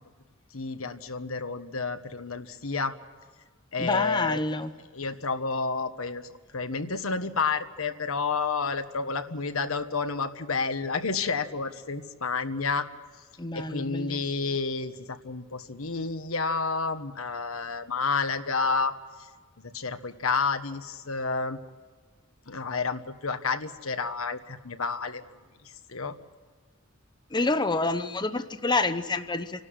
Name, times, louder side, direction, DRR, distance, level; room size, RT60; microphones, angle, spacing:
voice 1, 0.5-2.9 3.7-4.4 4.9-12.8 13.5-18.9 19.7-21.6 22.5-25.2 25.9-26.1, left 4 dB, 85° left, 9 dB, 1.4 m, -30 dB
voice 2, 3.8-4.7 13.4-14.2 27.3-29.6, left 3 dB, 20° left, 10 dB, 0.8 m, -28 dB
28.0 x 12.5 x 9.7 m, 1.5 s
head